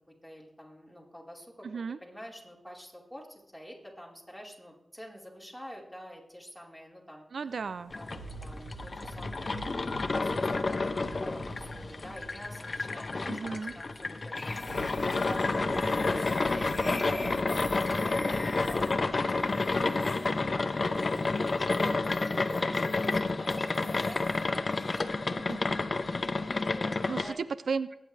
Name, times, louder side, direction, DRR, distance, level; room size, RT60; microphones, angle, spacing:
voice 1, 0.2-7.3 7.9-17.7 18.0-25.7 26.5-27.4, equal, 5° right, -3 dB, 4.4 m, -47 dB
voice 2, 1.6-2.0 7.3-7.9 13.3-13.7 25.5-25.6 27.1-27.9, right 5 dB, 85° right, 15 dB, 0.4 m, -34 dB
sound 1, 7.5-19.0, right 2 dB, 70° right, 5.4 m, -47 dB
sound 2, 7.9-27.3, left 3 dB, 55° left, 0.9 m, -30 dB
sound 3, 14.4-24.5 24.8-25.0, left 2 dB, 30° left, 1.5 m, -42 dB
22.5 x 9.8 x 3.4 m, 0.81 s
cardioid pair, 55°, 0 cm